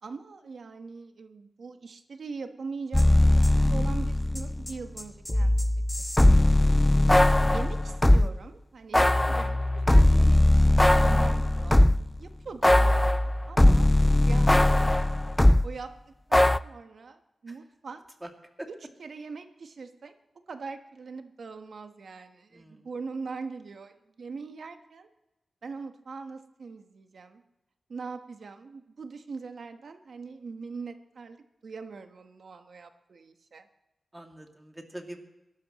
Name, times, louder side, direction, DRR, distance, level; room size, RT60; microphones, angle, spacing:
voice 1, 0.0-3.1 3.3-5.5 6.2-7.0 7.5-10.7 11.0-11.9 12.2-13.9 14.2-15.0 15.6-15.9 16.3-18.0 19.0-20.1 20.5-25.1 25.6-27.4 27.9-31.4 31.6-33.7, right 4 dB, 75° right, 7 dB, 1.2 m, -41 dB
sound 1, 2.9-4.7 5.0-8.3 8.9-12.1 12.6-15.7 16.3-16.6, left 1 dB, 15° left, 0.4 m, -20 dB
voice 2, 22.5-22.9 34.1-35.2, right 1 dB, 15° right, 2 dB, 2.4 m, -44 dB
22.5 x 12.0 x 3.0 m, 0.95 s
cardioid pair, 70°, 0 cm